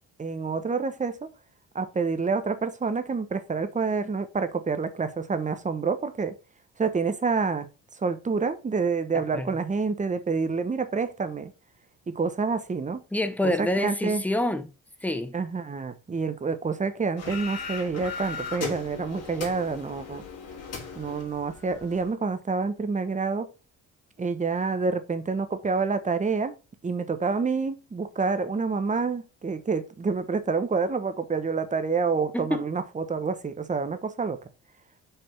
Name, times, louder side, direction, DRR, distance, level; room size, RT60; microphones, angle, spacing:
voice 1, 0.2-1.2 1.7-6.3 6.8-7.7 8.0-11.5 12.1-13.0 13.4-14.2 15.3-20.2 21.0-23.5 24.2-26.5 26.8-34.4, right 4 dB, 25° right, 1.0 m, -28 dB
voice 2, 13.1-14.7 15.0-15.4 32.3-32.7, left 1 dB, 5° left, 0.9 m, -27 dB
sound 1, 17.2-22.1, left 5 dB, 55° left, 2.6 m, -38 dB
5.6 x 3.5 x 5.7 m
cardioid pair, 90°, 30 cm